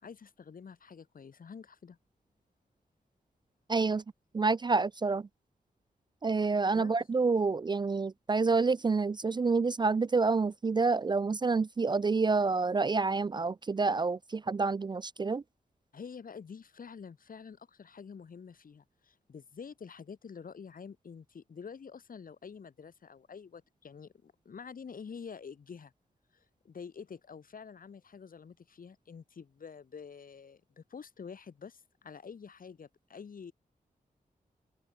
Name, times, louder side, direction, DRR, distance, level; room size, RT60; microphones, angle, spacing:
voice 1, 0.0-2.0 6.7-6.9 15.9-25.9 26.3-33.5, left 6 dB, 65° left, 2.1 m, -48 dB
voice 2, 3.7-4.0 4.3-5.3 6.2-15.4, right 4 dB, 30° right, 0.3 m, -28 dB
open air
wide cardioid pair, 105°, 15 cm